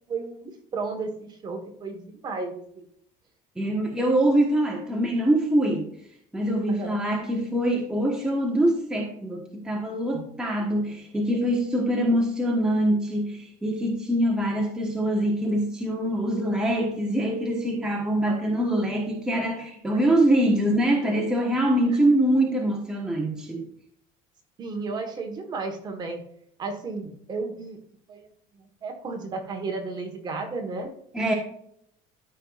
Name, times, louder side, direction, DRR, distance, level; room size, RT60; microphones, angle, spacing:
voice 1, 0.1-2.9 6.7-6.9 10.1-10.2 18.2-18.4 21.9-22.0 24.6-26.2 26.6-27.8 28.1-28.3 28.6-30.9, right 3 dB, 25° right, 1.5 m, -33 dB
voice 2, 3.6-5.9 6.3-23.6 31.1-31.3, right 1 dB, 5° right, 1.3 m, -24 dB
13.5 x 5.5 x 2.5 m
cardioid pair, 160°, 16 cm